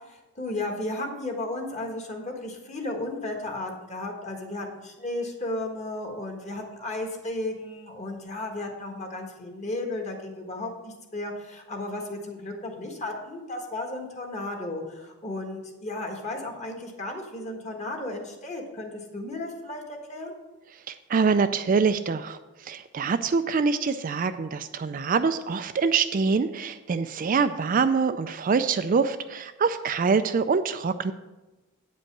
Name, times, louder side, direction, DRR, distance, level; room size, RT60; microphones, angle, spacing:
voice 1, 0.1-20.3, left 2 dB, 30° left, 2 dB, 1.5 m, -34 dB
voice 2, 20.9-31.1, right 5 dB, 40° right, 10 dB, 0.3 m, -25 dB
9.0 x 5.3 x 7.3 m, 1.1 s
head